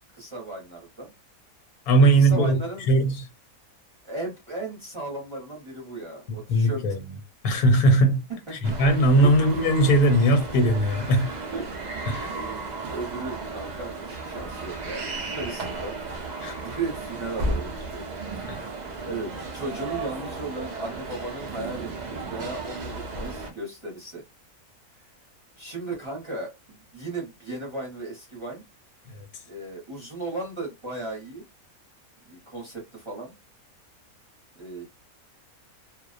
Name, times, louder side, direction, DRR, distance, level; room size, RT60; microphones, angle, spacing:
voice 1, 0.1-1.1 2.0-2.8 4.0-6.9 9.1-9.3 11.5-11.7 12.2-16.0 16.6-18.0 18.4-18.7 19.0-24.2 25.6-28.6 29.5-31.4 32.3-33.3 34.6-34.9, right 2 dB, 25° right, 0.8 m, -36 dB
voice 2, 1.9-2.6 2.9-3.1 6.3-7.0 7.4-8.2 8.5-11.3 12.1-12.3 16.4-16.6 18.5-18.6, right 1 dB, 90° left, 1.2 m, -19 dB
sound 1, 8.6-23.5, right 3 dB, 85° right, 0.4 m, -34 dB
2.4 x 2.1 x 2.4 m
omnidirectional pair, 1.6 m